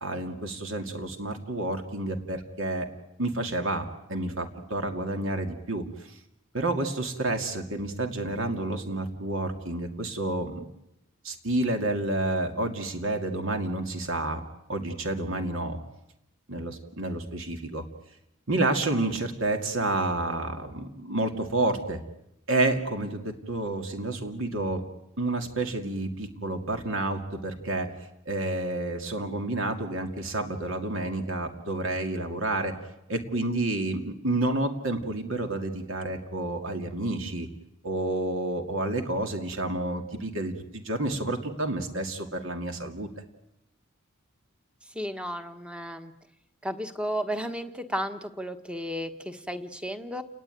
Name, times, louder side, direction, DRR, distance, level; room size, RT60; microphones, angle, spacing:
voice 1, 0.0-2.9 3.2-6.2 6.5-10.6 11.2-14.4 14.7-15.8 16.5-17.8 18.5-22.0 22.5-24.8 25.2-27.9 28.3-32.7 33.1-37.5 37.8-43.1, right 2 dB, 60° right, 5 dB, 2.5 m, -29 dB
voice 2, 44.9-46.1 46.6-50.2, equal, 5° right, 8 dB, 1.3 m, -33 dB
30.0 x 20.0 x 9.3 m, 0.86 s
head